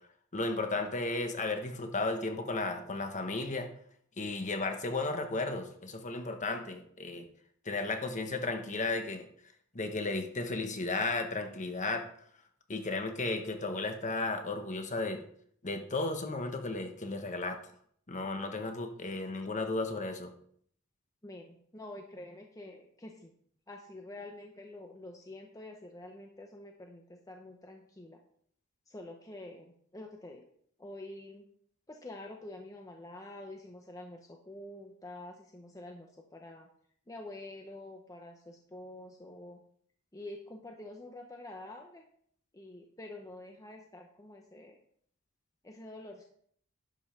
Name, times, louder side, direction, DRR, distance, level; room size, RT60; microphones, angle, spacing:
voice 1, 0.3-3.7 4.2-7.3 7.6-9.2 9.7-12.0 12.7-15.2 15.6-17.6 18.1-20.3, left 3 dB, 35° left, 5 dB, 1.2 m, -34 dB
voice 2, 21.2-23.3 23.7-28.2 28.9-30.5 30.8-31.5 31.9-36.7 37.1-39.6 40.1-42.0 42.5-44.8 45.6-46.2, left 1 dB, 15° left, 2 dB, 0.8 m, -47 dB
11.0 x 5.3 x 5.8 m, 0.62 s
head